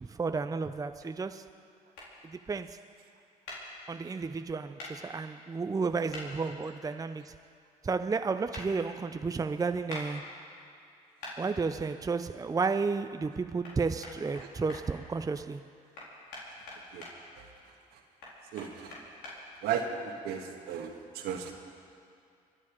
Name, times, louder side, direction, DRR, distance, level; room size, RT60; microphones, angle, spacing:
voice 1, 0.0-1.5 2.2-2.8 3.9-7.3 7.8-10.3 11.4-15.6, right 4 dB, 20° right, 0.6 m, -32 dB
sound 1, 1.9-2.1 3.5-3.6 4.8-4.9 6.1-6.3 8.5-8.7 9.9-10.0 11.2-11.4 13.6-13.7 14.0-14.8 15.9-17.1 18.2-19.3, left 2 dB, 80° left, 4.3 m, -43 dB
voice 2, 18.5-18.9 19.6-21.5, right 7 dB, 80° right, 1.6 m, -35 dB
24.5 x 11.0 x 5.0 m
supercardioid pair, 60°, 17 cm